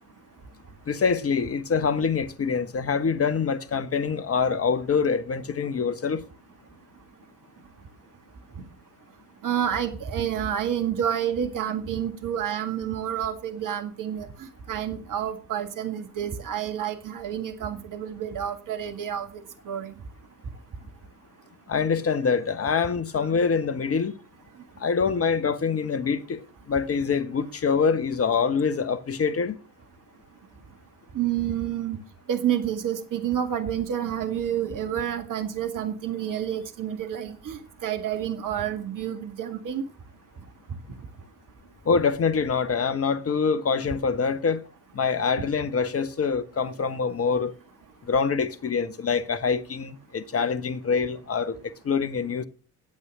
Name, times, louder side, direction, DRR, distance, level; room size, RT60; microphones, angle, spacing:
voice 1, 0.9-6.2 21.7-24.1 24.8-26.4 26.7-29.6 41.8-44.6 44.9-47.5 48.0-52.4, left 5 dB, 30° left, 1.4 m, -25 dB
voice 2, 9.4-14.3 14.7-19.3 19.7-19.9 31.1-32.0 32.3-39.8, right 9 dB, 45° right, 2.0 m, -29 dB
12.0 x 8.2 x 6.2 m
figure-of-eight pair, 55°, 45 cm